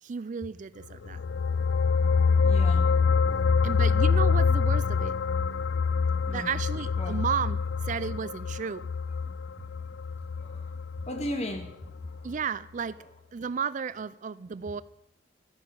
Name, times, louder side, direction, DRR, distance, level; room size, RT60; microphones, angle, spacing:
voice 1, 0.0-1.2 3.6-5.2 6.3-8.9 12.2-13.0 13.3-14.8, right 6 dB, 45° right, 0.4 m, -33 dB
sound 1, 0.9-11.7 12.0-12.2, left 5 dB, 80° left, 0.4 m, -26 dB
voice 2, 2.4-2.9 3.5-3.6 6.3-6.5 7.0-7.2 9.2-9.3 10.3-12.2, left 1 dB, 40° left, 2.1 m, -37 dB
13.5 x 10.5 x 6.9 m
head